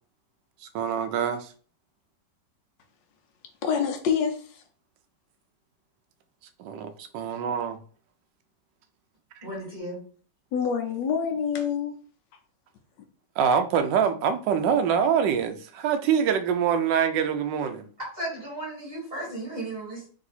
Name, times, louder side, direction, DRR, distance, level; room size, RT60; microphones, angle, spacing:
voice 1, 0.7-1.5 6.6-7.8 13.4-17.9, right 7 dB, 85° right, 1.3 m, -25 dB
voice 2, 3.6-4.6 10.5-11.9, left 7 dB, 85° left, 1.3 m, -26 dB
voice 3, 9.4-10.0 18.0-20.1, right 1 dB, 25° right, 2.1 m, -35 dB
3.8 x 2.7 x 4.1 m
omnidirectional pair, 1.9 m